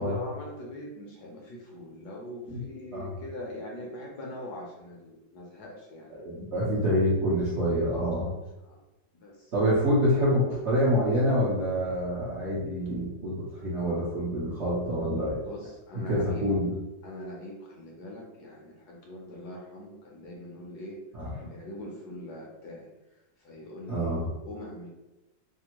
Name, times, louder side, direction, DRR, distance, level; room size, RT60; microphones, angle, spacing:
voice 1, 0.0-6.2 8.6-8.8 9.1-9.5 15.4-16.5 17.0-21.0 21.4-22.9 23.4-24.9, left 1 dB, 70° left, -2 dB, 1.1 m, -42 dB
voice 2, 6.2-8.3 9.5-15.4 16.1-16.7 21.1-21.3 23.9-24.2, equal, 60° right, -9 dB, 0.7 m, -26 dB
3.4 x 2.0 x 2.9 m, 0.99 s
omnidirectional pair, 2.0 m